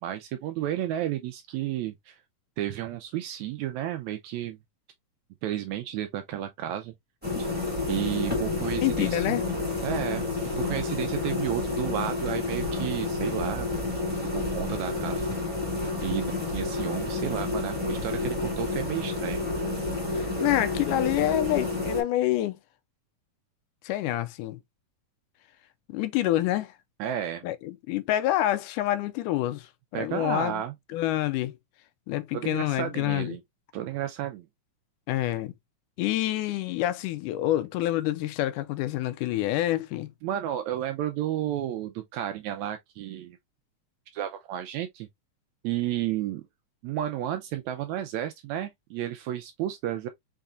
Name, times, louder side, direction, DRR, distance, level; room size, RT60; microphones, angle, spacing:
voice 1, 0.0-2.2 2.6-4.6 5.4-6.9 7.4-7.5 7.9-9.4 9.8-10.2 10.6-13.7 14.2-15.3 16.0-19.4 27.0-27.4 29.9-30.7 32.3-33.4 33.7-34.5 40.2-43.4 44.1-45.1 45.6-46.4 46.8-50.1, right 12 dB, 80° right, 1.7 m, -32 dB
sound 1, 7.2-22.0, left 3 dB, 5° right, 1.6 m, -30 dB
voice 2, 8.8-9.4 20.1-22.6 23.8-24.6 25.9-26.7 27.4-30.6 30.9-31.6 32.1-33.4 35.1-35.5 36.0-40.1, left 14 dB, 85° left, 2.1 m, -27 dB
5.5 x 3.5 x 2.4 m
omnidirectional pair, 3.6 m